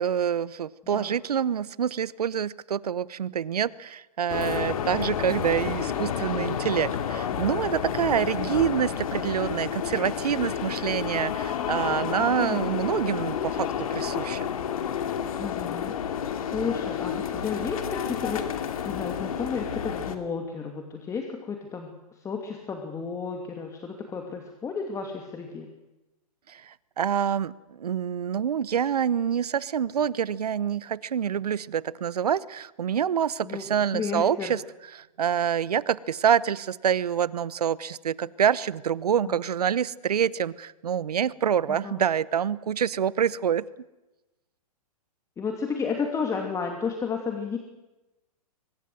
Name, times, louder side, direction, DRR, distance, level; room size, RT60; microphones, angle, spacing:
voice 1, 0.0-14.5 26.5-34.6 34.9-43.7, right 8 dB, 75° right, 20 dB, 1.0 m, -26 dB
sound 1, 4.3-20.2, left 8 dB, 60° left, 2.7 m, -30 dB
voice 2, 15.4-21.9 22.2-25.7 33.4-33.6 33.9-34.5 39.2-39.3 41.7-42.0 45.4-47.6, left 5 dB, 15° left, 3 dB, 2.6 m, -32 dB
23.5 x 21.0 x 7.8 m, 1.0 s
hypercardioid pair, 125°, 20 cm